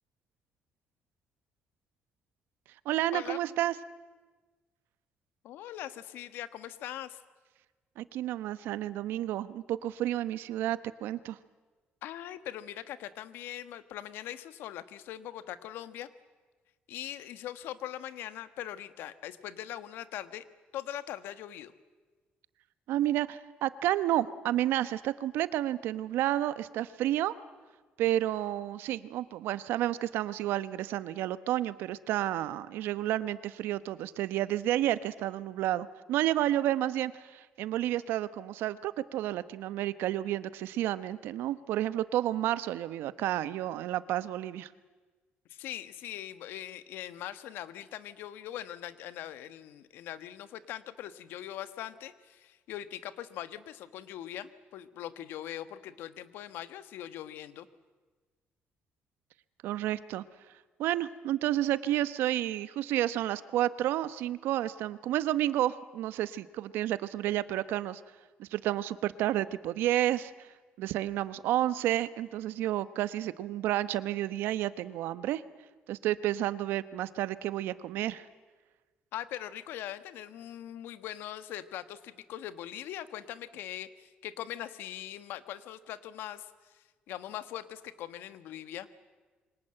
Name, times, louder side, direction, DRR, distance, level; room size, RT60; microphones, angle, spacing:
voice 1, 2.8-3.7 8.0-11.4 22.9-27.3 28.0-44.7 59.6-60.2 60.8-68.0 68.4-70.5 70.8-75.4 75.9-78.2, right 13 dB, 90° right, 15 dB, 1.0 m, -31 dB
voice 2, 5.4-7.2 12.0-16.1 16.9-20.4 20.7-21.7 45.5-57.7 79.1-88.9, left 12 dB, 80° left, 13 dB, 1.4 m, -41 dB
27.5 x 24.5 x 7.8 m, 1.3 s
cardioid pair, 160°, 4 cm